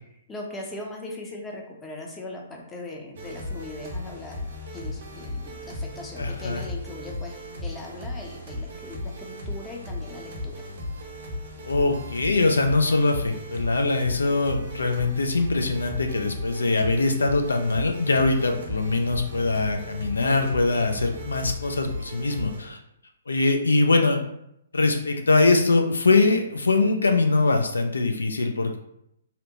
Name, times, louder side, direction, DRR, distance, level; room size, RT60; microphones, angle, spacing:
voice 1, 0.3-4.5 4.7-10.7, left 2 dB, 15° left, -1 dB, 0.5 m, -39 dB
sound 1, 3.1-22.6, left 1 dB, 60° right, 0.7 m, -36 dB
voice 2, 6.2-6.6 11.6-22.8 23.3-24.2 24.7-28.8, left 3 dB, 80° left, 4 dB, 0.3 m, -22 dB
2.7 x 2.0 x 2.7 m, 0.77 s
figure-of-eight pair, 125°, 0 cm